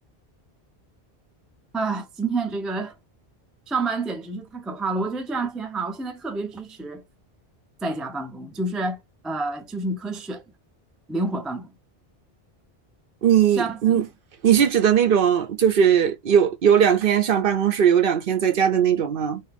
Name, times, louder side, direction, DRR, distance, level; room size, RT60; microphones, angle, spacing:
voice 1, 1.7-3.0 3.7-7.0 7.8-9.0 9.2-10.4 11.1-11.8 13.6-14.1, right 3 dB, ahead, 0.3 m, -28 dB
voice 2, 13.2-14.1 14.4-19.4, right 8 dB, 60° right, 0.8 m, -19 dB
2.9 x 2.6 x 3.3 m
omnidirectional pair, 1.1 m